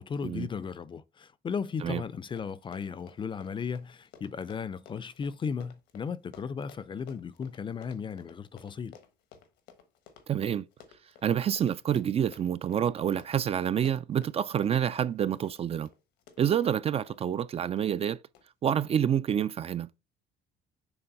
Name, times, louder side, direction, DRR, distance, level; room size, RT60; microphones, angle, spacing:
voice 1, 0.0-9.0, left 6 dB, 30° left, 0.5 m, -36 dB
Run, 1.9-2.0 2.2-17.2 17.8-18.0 18.3-18.4, left 7 dB, 85° left, 1.2 m, -55 dB
voice 2, 10.3-10.6 11.2-15.9 16.4-18.2 18.6-19.9, right 9 dB, 35° right, 0.4 m, -28 dB
7.0 x 3.2 x 5.3 m
cardioid pair, 110°, 17 cm